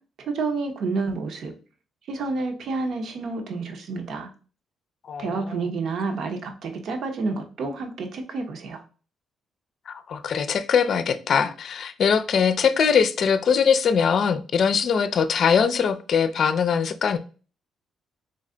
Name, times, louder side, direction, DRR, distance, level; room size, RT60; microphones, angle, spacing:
voice 1, 0.2-1.5 2.1-4.3 5.2-8.8, right 3 dB, 65° right, 0.9 m, -29 dB
voice 2, 5.1-5.7 9.9-17.2, left 6 dB, 60° left, 0.5 m, -22 dB
3.9 x 3.2 x 3.8 m
cardioid pair, 90°, 0 cm